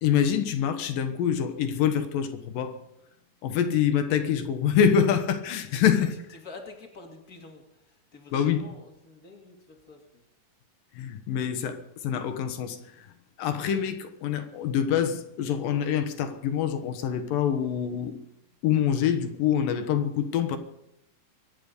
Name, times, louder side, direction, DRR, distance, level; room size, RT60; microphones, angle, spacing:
voice 1, 0.0-2.8 3.4-6.1 8.3-8.6 10.9-13.1 13.4-18.2 18.6-20.6, left 8 dB, 80° left, 2.9 m, -25 dB
voice 2, 5.6-6.0 6.3-10.2, left 3 dB, 30° left, 2.3 m, -47 dB
24.0 x 10.0 x 5.3 m
omnidirectional pair, 3.9 m